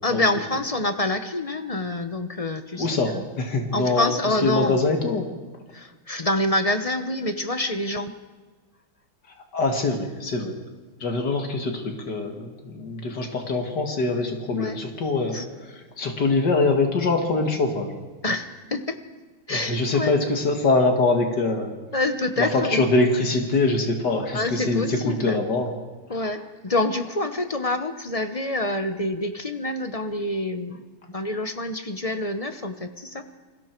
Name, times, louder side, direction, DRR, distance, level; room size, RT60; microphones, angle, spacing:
voice 1, 0.0-3.3 3.7-4.8 5.7-8.1 14.5-14.8 15.3-15.5 18.2-19.0 19.5-20.1 21.9-22.9 24.3-25.4 26.1-30.9 31.1-33.3, left 2 dB, 30° left, 9 dB, 0.7 m, -27 dB
voice 2, 2.8-4.1 4.4-5.3 9.5-10.5 11.0-15.4 16.0-17.9 19.5-21.8 22.7-25.7, left 3 dB, 70° left, 4 dB, 2.4 m, -23 dB
29.0 x 21.0 x 4.6 m, 1.3 s
omnidirectional pair, 1.9 m